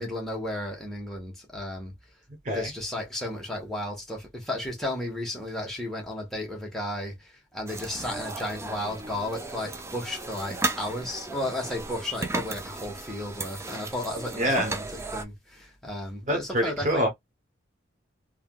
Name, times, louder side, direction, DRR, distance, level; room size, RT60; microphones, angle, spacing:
voice 1, 0.0-1.9 2.5-17.1, left 1 dB, ahead, 1.1 m, -34 dB
sound 1, 7.7-15.2, right 3 dB, 15° right, 0.3 m, -35 dB
voice 2, 14.4-14.7 16.3-17.1, equal, 40° right, 1.0 m, -25 dB
3.4 x 2.2 x 2.3 m
head